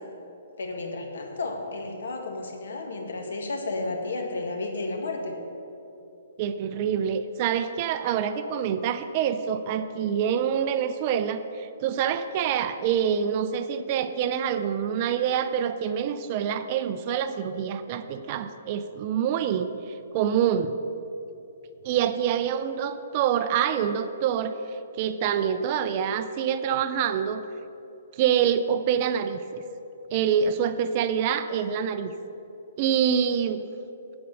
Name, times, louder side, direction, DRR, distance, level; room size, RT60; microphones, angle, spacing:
voice 1, 0.6-5.4, left 2 dB, 85° left, 3 dB, 1.7 m, -32 dB
voice 2, 6.4-20.7 21.8-27.5 28.1-29.6 30.1-32.1 32.8-33.6, right 8 dB, 25° right, 10 dB, 0.3 m, -26 dB
8.4 x 7.9 x 7.0 m, 2.9 s
hypercardioid pair, 175°, 0 cm